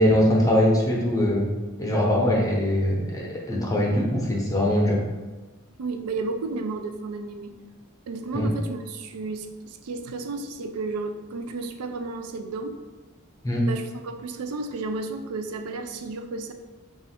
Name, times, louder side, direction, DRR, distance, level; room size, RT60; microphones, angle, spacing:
voice 1, 0.0-1.5 1.8-5.0 8.3-8.5 13.4-13.7, left 1 dB, 15° left, -3 dB, 0.7 m, -22 dB
voice 2, 5.8-7.6 8.1-12.8 13.7-16.5, right 3 dB, 85° right, 7 dB, 0.4 m, -32 dB
4.0 x 2.4 x 4.2 m, 1.2 s
head